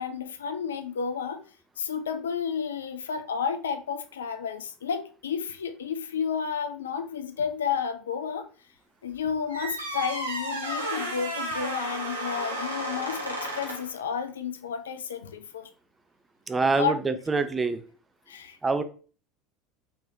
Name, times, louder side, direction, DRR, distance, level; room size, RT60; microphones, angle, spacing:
voice 1, 0.0-1.4 1.8-8.5 9.0-15.7 16.8-17.2 18.3-18.6, left 6 dB, 70° left, 0.3 m, -31 dB
sound 1, 9.5-14.0, right 1 dB, 85° right, 0.6 m, -33 dB
voice 2, 16.5-17.8 18.6-18.8, right 4 dB, 15° right, 0.3 m, -25 dB
3.1 x 2.9 x 2.5 m
figure-of-eight pair, 70°, 0 cm